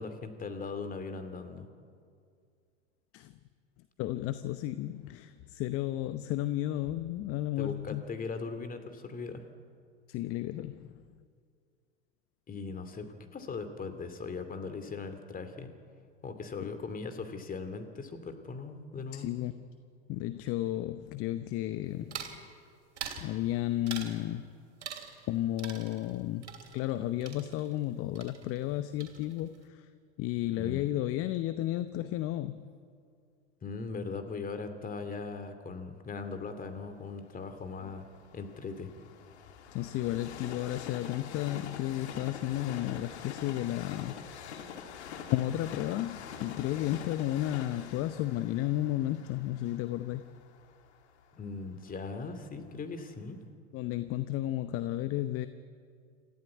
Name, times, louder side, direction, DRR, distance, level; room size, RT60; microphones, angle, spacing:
voice 1, 0.0-1.7 7.6-9.4 12.5-15.7 16.2-19.3 30.5-31.0 33.6-38.1 38.3-38.9 51.4-53.4, left 4 dB, 25° left, 8 dB, 2.6 m, -39 dB
voice 2, 4.0-8.0 10.1-10.9 16.6-16.7 19.1-19.5 20.1-22.3 23.2-24.5 25.3-26.5 26.7-29.9 30.2-32.6 39.7-44.2 45.3-50.2 53.7-55.5, left 14 dB, 40° left, 12 dB, 0.9 m, -33 dB
sound 1, 22.1-22.4 23.0-23.3 23.9-24.2 24.8-25.3 25.6-27.9 28.2-28.7 29.0-29.6, right 7 dB, 75° right, 3.0 m, -43 dB
Train, 36.6-52.6 53.1-53.2, left 7 dB, 70° left, 2.1 m, -46 dB
27.5 x 14.5 x 9.6 m, 2.2 s
hypercardioid pair, 85°, 35 cm